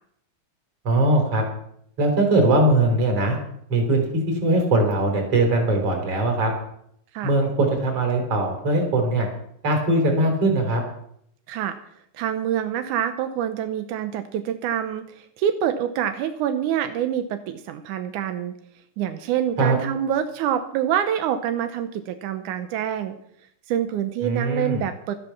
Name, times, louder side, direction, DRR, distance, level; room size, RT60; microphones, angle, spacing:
voice 1, 0.8-1.4 2.0-3.4 3.7-6.5 7.2-9.3 9.6-10.8 19.6-19.8 24.2-24.8, right 2 dB, 40° right, 2 dB, 4.3 m, -21 dB
voice 2, 11.5-11.8 12.1-18.5 19.0-23.2 23.7-25.1, right 10 dB, 80° right, 8 dB, 1.8 m, -26 dB
13.0 x 12.5 x 5.9 m, 0.71 s
omnidirectional pair, 4.5 m